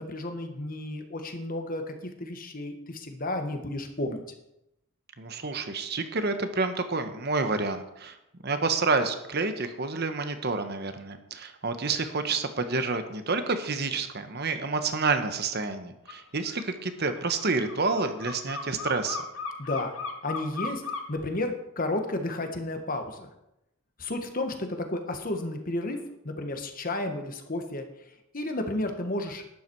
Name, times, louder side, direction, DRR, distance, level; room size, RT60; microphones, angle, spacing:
voice 1, 0.0-4.2 19.6-19.9 20.2-20.8 21.1-23.2 24.0-27.9 28.3-29.4, left 2 dB, 40° left, 6 dB, 1.5 m, -32 dB
voice 2, 5.2-8.2 8.4-19.2, right 3 dB, 50° right, 8 dB, 1.2 m, -29 dB
sound 1, 16.1-16.2 16.5-21.2, left 4 dB, 70° left, 1.7 m, -36 dB
11.5 x 10.5 x 4.7 m, 0.85 s
head